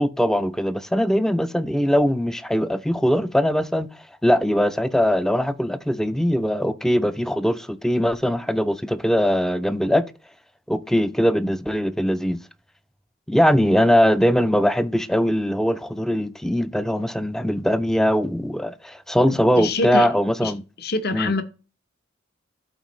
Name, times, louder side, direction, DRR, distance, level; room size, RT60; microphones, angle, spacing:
voice 1, 0.0-3.9 4.2-10.0 10.7-12.4 13.3-20.6 21.1-21.4, equal, ahead, 0.4 m, -21 dB
voice 2, 19.6-20.1 20.4-20.5 20.8-21.4, left 3 dB, 55° left, 0.9 m, -24 dB
12.0 x 4.4 x 3.1 m
head